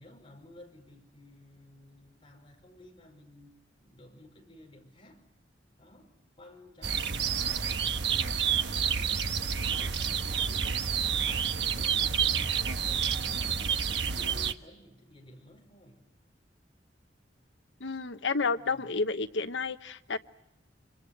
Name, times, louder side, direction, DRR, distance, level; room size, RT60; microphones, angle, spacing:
voice 1, 0.0-5.3 5.8-8.7 9.1-16.0 18.5-19.0, left 1 dB, 30° left, 5.5 m, -53 dB
sound 1, 6.8-14.5, right 7 dB, 70° right, 1.3 m, -29 dB
voice 2, 17.8-20.2, left 4 dB, 85° left, 1.0 m, -31 dB
26.5 x 26.0 x 7.9 m
head